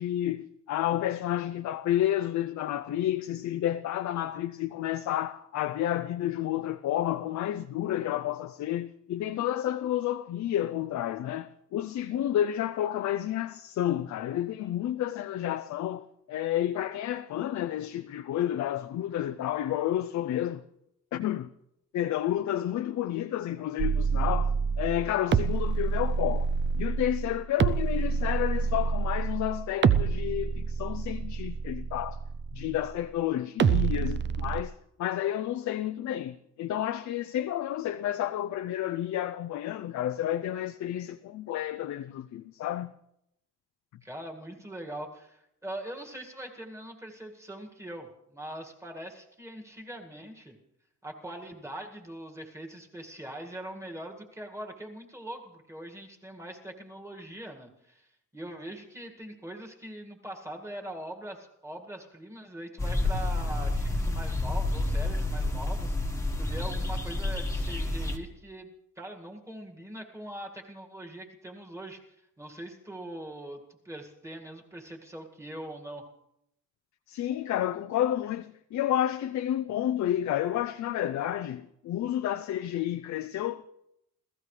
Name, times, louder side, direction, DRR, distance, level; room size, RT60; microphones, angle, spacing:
voice 1, 0.0-20.6 21.1-21.5 21.9-26.5 26.7-32.2 32.5-34.7 35.0-42.9 77.1-83.7, left 12 dB, 60° left, 0.5 m, -30 dB
sound 1, 23.8-33.0 33.6-34.6, right 6 dB, 35° right, 0.5 m, -27 dB
voice 2, 44.0-50.6 51.0-76.0, right 1 dB, 10° right, 2.0 m, -42 dB
sound 2, 62.8-68.2, left 2 dB, 10° left, 1.4 m, -29 dB
28.5 x 15.0 x 3.3 m
cardioid pair, 140°, 32 cm